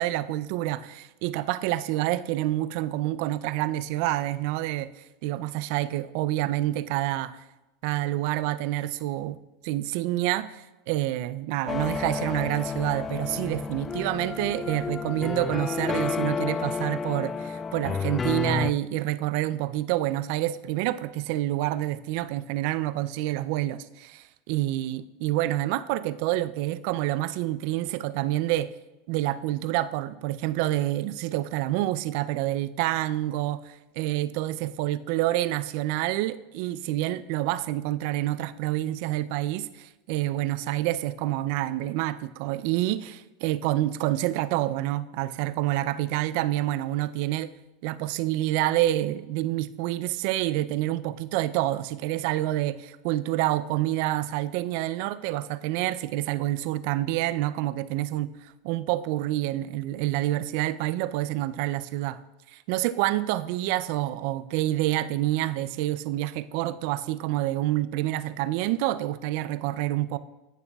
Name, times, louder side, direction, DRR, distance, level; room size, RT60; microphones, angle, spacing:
voice 1, 0.0-4.9 5.2-7.4 7.8-9.4 9.6-28.7 29.1-47.5 47.8-62.2 62.5-70.2, right 15 dB, 65° right, 16 dB, 0.4 m, -28 dB
sound 1, 11.7-18.7, left 5 dB, 25° left, 0.3 m, -31 dB
15.0 x 7.0 x 2.3 m, 1.0 s
hypercardioid pair, 100°, 0 cm